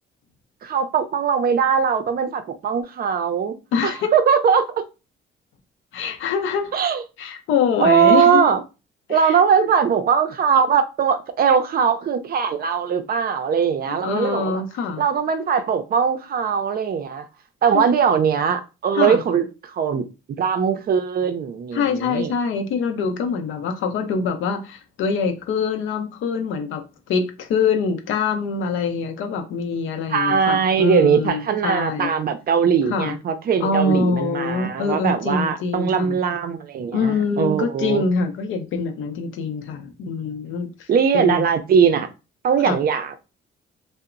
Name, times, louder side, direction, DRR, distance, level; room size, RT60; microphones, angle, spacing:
voice 1, 0.6-3.6 3.8-4.8 6.7-7.0 7.8-8.6 9.1-14.6 15.0-17.2 17.6-20.1 20.4-22.3 30.1-38.0 40.9-42.1 42.4-43.2, right 7 dB, 50° right, 0.5 m, -20 dB
voice 2, 3.7-4.1 5.9-6.7 7.2-8.4 9.1-9.3 14.0-15.0 17.7-17.8 19.0-19.2 21.7-32.1 32.9-33.2 33.6-36.1 36.9-40.9 41.1-41.5 42.6-42.8, left 5 dB, 80° left, 0.6 m, -24 dB
2.9 x 2.0 x 2.4 m
cardioid pair, 90°, 20 cm